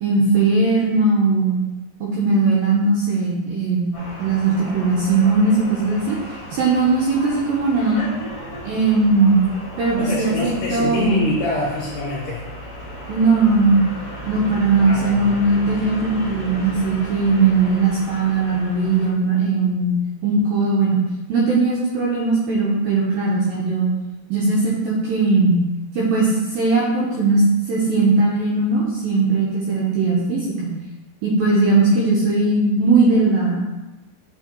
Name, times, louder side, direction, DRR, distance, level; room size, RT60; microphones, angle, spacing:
voice 1, 0.0-1.6 2.0-3.9 4.2-6.2 6.5-8.1 8.6-9.4 9.8-11.2 13.1-13.8 14.3-20.0 20.2-21.0 21.3-23.9 24.3-25.6 25.9-30.7 31.2-33.6, right 3 dB, 75° right, -5 dB, 2.2 m, -19 dB
sound 1, 3.9-19.1, equal, 55° left, 0.9 m, -35 dB
voice 2, 10.0-12.5 14.8-15.3, left 2 dB, 70° left, -6 dB, 2.0 m, -25 dB
7.6 x 4.5 x 4.5 m, 1.0 s
omnidirectional pair, 5.2 m